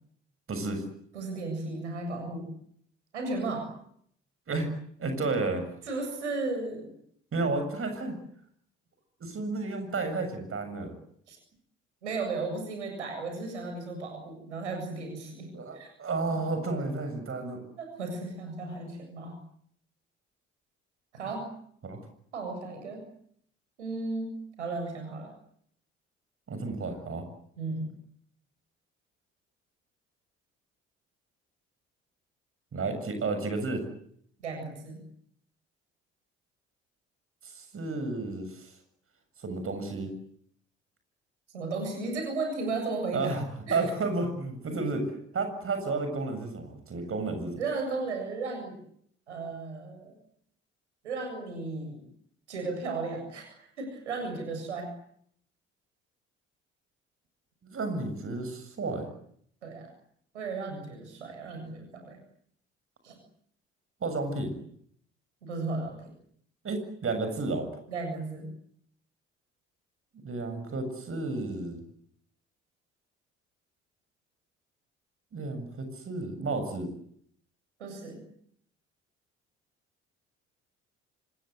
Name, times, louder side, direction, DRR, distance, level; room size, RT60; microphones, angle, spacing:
voice 1, 0.5-0.8 4.5-4.7 5.0-5.7 7.3-8.1 9.2-10.9 15.5-17.6 21.8-22.0 26.5-27.3 32.7-33.8 37.4-38.7 39.4-40.1 43.1-47.6 57.6-59.1 64.0-64.6 66.6-67.7 70.2-71.8 75.3-76.9, right 3 dB, 40° right, 7 dB, 7.4 m, -32 dB
voice 2, 1.1-2.5 3.1-3.7 5.9-6.9 11.3-11.4 12.0-15.9 17.8-19.4 21.1-21.5 22.3-23.0 23.8-25.3 27.6-27.9 34.4-35.0 41.5-43.4 43.7-43.9 47.6-48.8 49.3-50.2 51.0-52.1 52.5-54.9 59.6-59.9 60.3-62.2 63.0-63.1 65.4-66.0 67.9-68.5 77.8-78.2, right 3 dB, 80° right, 5 dB, 7.6 m, -35 dB
26.5 x 24.5 x 8.1 m, 0.67 s
figure-of-eight pair, 50°, 35 cm